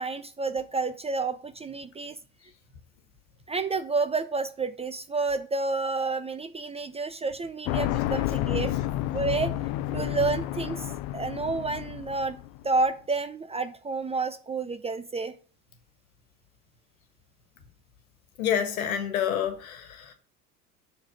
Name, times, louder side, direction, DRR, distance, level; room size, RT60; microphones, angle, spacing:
voice 1, 0.0-2.2 3.5-8.7 9.1-9.5 9.9-12.4 12.6-15.3, right 3 dB, 15° right, 0.5 m, -30 dB
sound 1, 7.7-12.6, left 14 dB, 50° left, 0.6 m, -30 dB
voice 2, 18.4-20.1, left 9 dB, 70° left, 1.6 m, -28 dB
6.5 x 4.9 x 6.8 m
hypercardioid pair, 80°, 43 cm